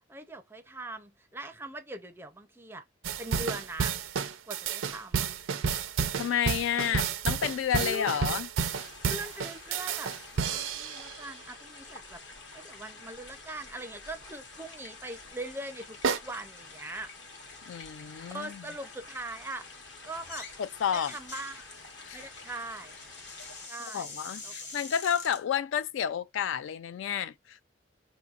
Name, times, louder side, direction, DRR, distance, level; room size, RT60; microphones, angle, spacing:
voice 1, 0.1-2.9 3.2-4.0 4.5-5.3 6.8-7.0 7.8-8.2 9.1-10.1 10.4-12.2 12.5-17.1 18.3-20.5 20.9-21.7 22.1-23.0 23.7-24.1 24.4-24.5, right 2 dB, 10° right, 0.4 m, -41 dB
sound 1, 3.0-11.2 16.0-16.2, right 6 dB, 85° right, 0.5 m, -31 dB
voice 2, 6.2-8.5 17.7-18.6 20.6-21.1 22.1-22.2 23.9-27.6, left 8 dB, 80° left, 0.3 m, -30 dB
sound 2, 8.6-23.7, left 3 dB, 60° left, 1.0 m, -48 dB
sound 3, 20.1-20.6 20.8-25.4, left 3 dB, 40° left, 0.9 m, -45 dB
4.9 x 2.8 x 2.4 m
head